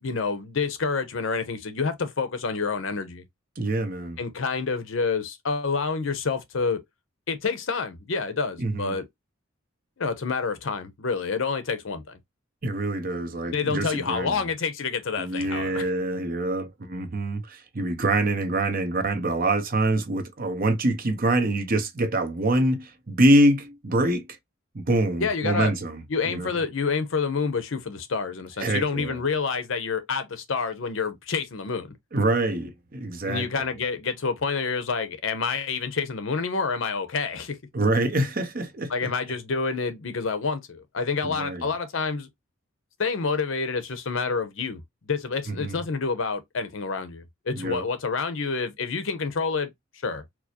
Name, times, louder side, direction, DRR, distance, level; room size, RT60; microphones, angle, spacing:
voice 1, 0.0-3.2 4.2-6.8 7.3-9.0 10.0-12.2 13.5-15.9 25.2-25.7 26.1-31.9 33.3-37.6 38.9-42.3 43.0-49.7 50.0-50.2, left 4 dB, 75° left, 0.7 m, -28 dB
voice 2, 3.6-4.2 8.6-8.9 12.6-14.4 15.2-24.3 24.7-26.0 26.3-26.5 28.6-29.2 32.1-33.4 37.7-39.1 41.2-41.6 45.5-45.8 47.5-47.8, right 1 dB, 45° right, 0.7 m, -25 dB
4.6 x 2.0 x 2.7 m
head